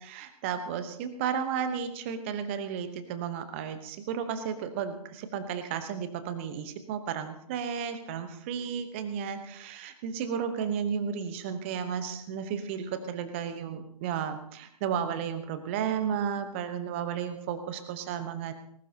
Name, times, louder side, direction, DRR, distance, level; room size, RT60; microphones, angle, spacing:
voice 1, 0.0-18.5, right 7 dB, 20° right, 10 dB, 1.0 m, -33 dB
19.5 x 17.5 x 2.8 m, 0.69 s
figure-of-eight pair, 140°, 20 cm